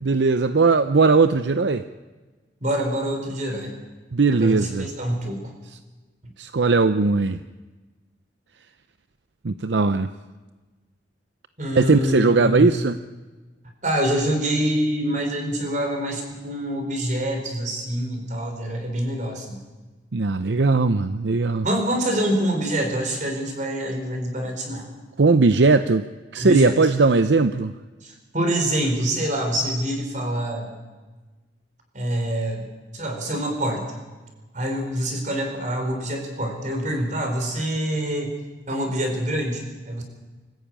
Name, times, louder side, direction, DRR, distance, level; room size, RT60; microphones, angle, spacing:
voice 1, 0.0-1.9 4.1-4.9 6.4-7.4 9.4-10.1 11.7-13.0 20.1-21.7 25.2-26.1 26.3-27.7, right 3 dB, 70° right, 11 dB, 0.7 m, -19 dB
voice 2, 2.6-3.7 4.3-5.5 11.6-12.7 13.8-19.6 21.6-24.9 26.4-26.8 28.0-30.7 31.9-32.7 32.9-34.0 34.5-38.3 38.7-40.0, right 1 dB, 40° right, 3 dB, 4.5 m, -26 dB
25.0 x 15.0 x 8.9 m, 1.3 s
head